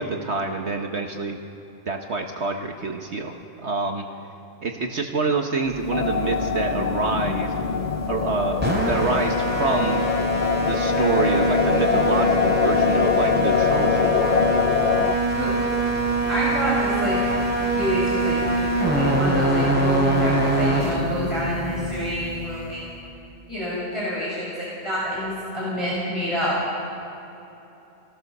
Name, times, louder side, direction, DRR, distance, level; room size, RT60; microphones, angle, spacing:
voice 1, 0.0-1.4 1.9-4.0 4.6-7.5 8.1-10.0 10.6-14.4, right 4 dB, 55° right, 3 dB, 1.5 m, -27 dB
sound 1, 5.7-22.9, right 1 dB, 10° right, 3.4 m, -24 dB
sound 2, 5.9-15.1, left 7 dB, 55° left, 0.5 m, -24 dB
voice 2, 16.2-17.2 17.7-22.8 23.5-26.6, equal, 20° left, -8 dB, 5.6 m, -27 dB
26.0 x 18.0 x 6.8 m, 3.0 s
omnidirectional pair, 1.4 m